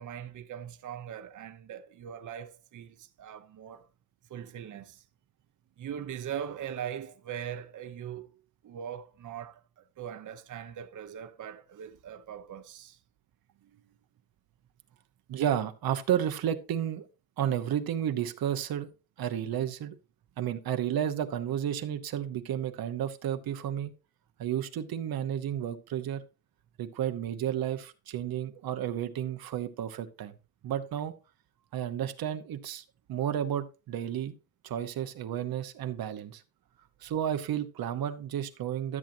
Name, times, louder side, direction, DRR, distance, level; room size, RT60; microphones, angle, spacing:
voice 1, 0.0-3.9 4.3-5.0 5.8-8.3 8.6-13.0, right 9 dB, 60° right, 0.7 m, -41 dB
voice 2, 15.3-17.1 17.4-18.9 19.2-20.0 20.4-23.9 24.4-26.2 26.8-30.3 30.6-31.1 31.7-32.8 33.1-34.3 34.6-36.4 37.0-39.0, right 10 dB, 90° right, 1.0 m, -32 dB
13.5 x 7.4 x 2.7 m
cardioid pair, 120°, 35 cm